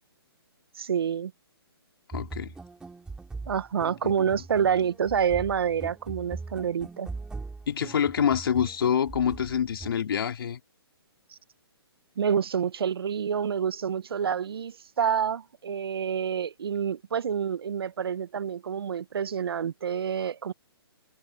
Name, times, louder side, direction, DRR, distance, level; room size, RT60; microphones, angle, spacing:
voice 1, 0.7-1.3 3.5-7.1 12.2-20.5, right 7 dB, 65° right, 1.3 m, -28 dB
voice 2, 2.1-2.5 4.0-4.1 7.7-10.6, left 8 dB, 65° left, 4.0 m, -26 dB
sound 1, 2.1-10.0, right 3 dB, 5° right, 3.3 m, -41 dB
hypercardioid pair, 150°, 13 cm